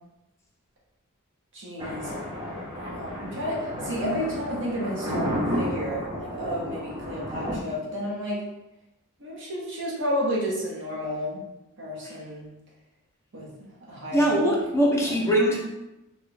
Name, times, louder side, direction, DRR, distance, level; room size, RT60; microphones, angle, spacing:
voice 1, 1.5-2.1 2.7-8.4 9.2-11.4 11.8-12.5 13.3-13.5 13.9-14.4 15.0-15.3, equal, 55° right, -4 dB, 0.9 m, -31 dB
Thunder, 1.8-7.5, equal, 20° right, 0.8 m, -32 dB
voice 2, 14.1-15.6, equal, 10° left, -4 dB, 0.6 m, -22 dB
3.1 x 2.3 x 3.2 m, 0.95 s
head